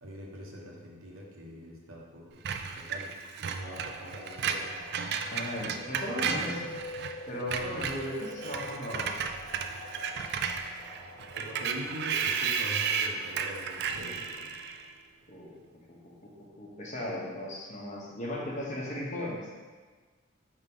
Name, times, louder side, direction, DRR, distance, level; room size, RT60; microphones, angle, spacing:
voice 1, 0.0-4.8 11.3-14.5, equal, 75° right, -2 dB, 1.1 m, -43 dB
Screech, 2.5-7.1 7.4-14.9, right 6 dB, 50° right, 0.3 m, -33 dB
sound 1, 3.6-14.8, left 1 dB, 55° left, 0.7 m, -46 dB
voice 2, 5.3-6.7 7.3-9.1 15.3-15.6 15.9-16.0 16.2-19.5, left 1 dB, 35° left, -4 dB, 1.1 m, -36 dB
4.7 x 3.6 x 5.4 m, 1.4 s
head